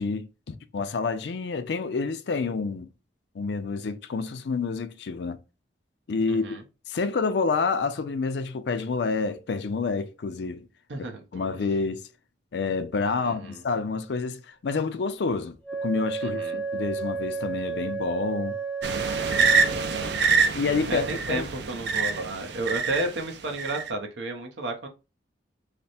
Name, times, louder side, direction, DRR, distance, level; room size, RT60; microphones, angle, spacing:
voice 1, 0.0-2.9 3.3-5.4 6.1-6.6 6.9-10.7 11.3-12.1 12.5-15.6 15.8-18.6 20.5-21.5, left 4 dB, 70° left, 0.4 m, -28 dB
voice 2, 6.3-6.6 10.9-11.5 13.2-13.6 16.2-16.6 19.5-20.2 20.9-24.9, right 2 dB, 85° right, 0.8 m, -33 dB
Wind instrument woodwind instrument, 15.6-20.3, right 4 dB, 5° left, 0.6 m, -32 dB
sound 1, 18.8-23.1 23.6-23.9, right 5 dB, 65° right, 0.4 m, -25 dB
3.3 x 2.1 x 4.1 m
head